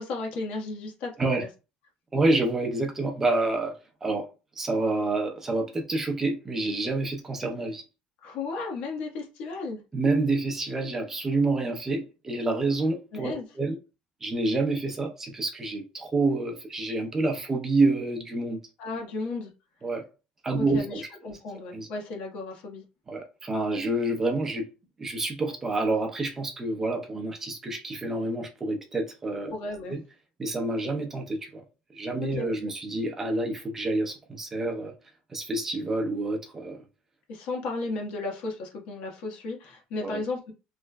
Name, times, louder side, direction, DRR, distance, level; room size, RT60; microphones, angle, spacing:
voice 1, 0.0-1.1 8.2-9.8 13.1-13.4 18.8-19.5 20.6-22.8 29.5-29.9 32.2-32.5 37.3-40.5, left 3 dB, 60° left, 1.2 m, -34 dB
voice 2, 2.1-3.8 4.0-4.3 4.6-7.8 9.9-13.8 14.2-18.6 19.8-20.0 20.4-21.1 21.7-21.9 23.1-24.7 25.0-29.5 29.9-30.0 30.4-31.6 31.9-34.9 35.3-36.8 40.0-40.2, right 2 dB, 15° right, 0.7 m, -28 dB
3.1 x 3.0 x 2.2 m
cardioid pair, 175°, 3 cm